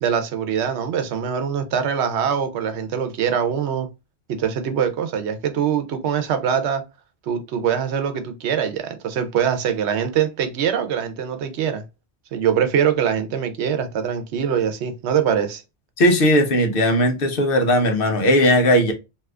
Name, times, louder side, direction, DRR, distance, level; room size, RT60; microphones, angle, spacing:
voice 1, 0.0-3.9 4.3-6.8 7.3-11.8 12.3-15.6, right 8 dB, 90° right, 0.9 m, -23 dB
voice 2, 16.0-18.9, equal, 60° left, 0.9 m, -17 dB
2.7 x 2.4 x 3.2 m
omnidirectional pair, 1.1 m